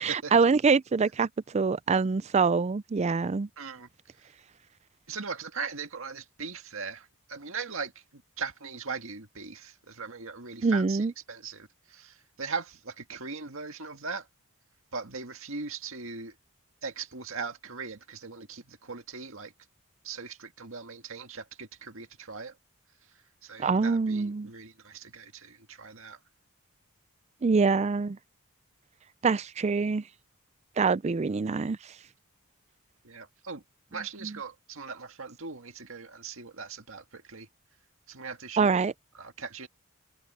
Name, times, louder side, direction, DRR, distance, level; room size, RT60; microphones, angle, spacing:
voice 1, 0.0-3.5 10.6-11.1 23.6-24.5 27.4-28.2 29.2-30.0 30.8-31.8 34.2-34.4 38.6-38.9, right 4 dB, 30° right, 0.4 m, -25 dB
voice 2, 3.6-3.9 5.1-11.0 11.3-14.3 14.9-16.3 16.8-19.5 20.0-22.5 23.4-26.2 33.0-33.6 33.9-37.5 38.1-38.8 39.2-39.7, right 5 dB, 65° right, 2.0 m, -39 dB
head